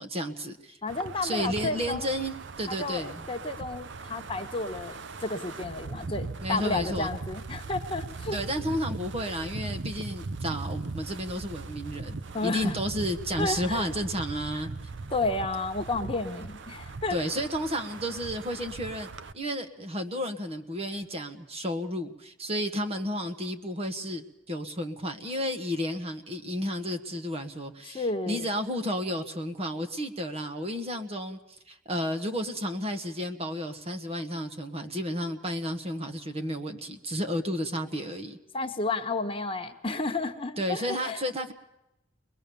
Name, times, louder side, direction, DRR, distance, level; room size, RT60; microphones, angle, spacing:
voice 1, 0.0-0.8 1.2-3.2 6.4-7.1 8.3-14.7 17.1-19.1 19.3-31.4 31.7-38.4 40.6-41.5, equal, 30° right, 7 dB, 1.3 m, -32 dB
voice 2, 0.8-2.2 2.7-8.4 12.3-12.8 13.4-13.9 14.5-14.7 15.1-17.2 27.8-28.5 38.5-41.2, left 3 dB, 30° left, 5 dB, 1.4 m, -32 dB
Wind, 0.9-19.3, right 3 dB, 65° right, 0.8 m, -39 dB
22.0 x 21.5 x 7.0 m, 0.89 s
head